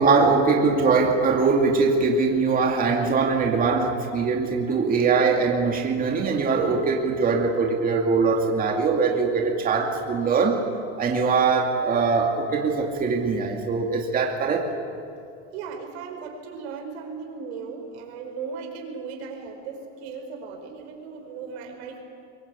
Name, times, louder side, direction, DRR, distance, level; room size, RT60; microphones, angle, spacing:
voice 1, 0.0-10.6 11.0-14.7, right 4 dB, 25° right, 1 dB, 2.3 m, -22 dB
voice 2, 15.5-22.0, right 5 dB, 85° right, 3 dB, 5.1 m, -37 dB
23.0 x 21.5 x 8.4 m, 2.4 s
supercardioid pair, 140°, 32 cm